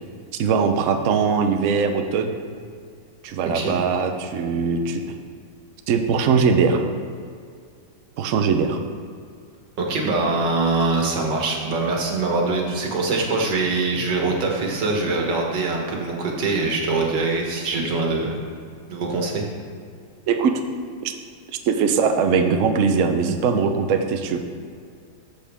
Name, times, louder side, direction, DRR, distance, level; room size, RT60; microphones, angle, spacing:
voice 1, 0.4-2.4 3.2-5.0 5.9-6.8 8.2-8.8 20.3-20.5 21.0-21.1 21.7-24.4, right 5 dB, 80° right, 6 dB, 0.7 m, -21 dB
voice 2, 9.8-18.4 18.9-19.4, right 3 dB, 65° right, 0 dB, 1.9 m, -23 dB
13.5 x 6.5 x 3.5 m, 2.2 s
omnidirectional pair, 2.2 m